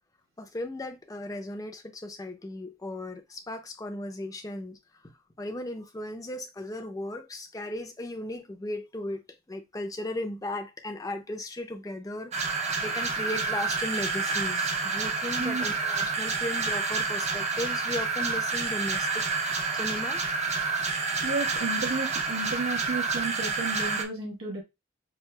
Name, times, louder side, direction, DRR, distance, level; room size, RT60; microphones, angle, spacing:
voice 1, 0.4-4.8 5.0-9.2 9.5-19.2 19.5-20.2, left 1 dB, 15° left, 0.5 m, -36 dB
sound 1, 12.3-24.0, right 4 dB, 30° right, 0.5 m, -29 dB
voice 2, 21.2-24.6, right 3 dB, 85° right, 1.1 m, -32 dB
5.9 x 2.4 x 2.2 m
head